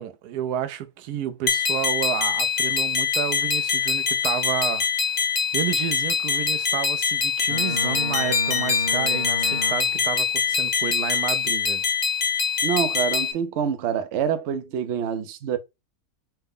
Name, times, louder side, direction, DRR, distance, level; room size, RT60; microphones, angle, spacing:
voice 1, 0.0-4.9 5.5-11.9, right 10 dB, 85° right, 1.1 m, -30 dB
sound 1, 1.5-13.3, left 6 dB, 85° left, 0.3 m, -24 dB
Boat Water vehicle, 7.5-10.2, left 2 dB, 60° left, 1.7 m, -32 dB
voice 2, 12.6-15.6, right 8 dB, 65° right, 0.7 m, -26 dB
4.5 x 2.1 x 3.5 m
omnidirectional pair, 1.6 m